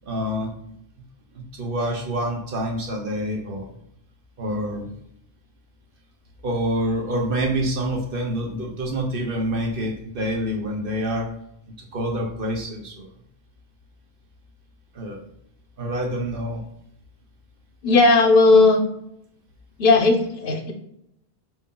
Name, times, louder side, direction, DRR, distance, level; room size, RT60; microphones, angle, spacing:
voice 1, 0.0-0.5 1.3-3.7 4.4-4.9 6.4-11.3 11.9-13.1 14.9-15.2 15.8-16.6, equal, 60° right, 1 dB, 1.1 m, -27 dB
voice 2, 17.8-18.9 19.8-20.7, left 3 dB, 60° left, 5 dB, 0.8 m, -16 dB
5.2 x 2.7 x 3.7 m, 0.75 s
omnidirectional pair, 1.1 m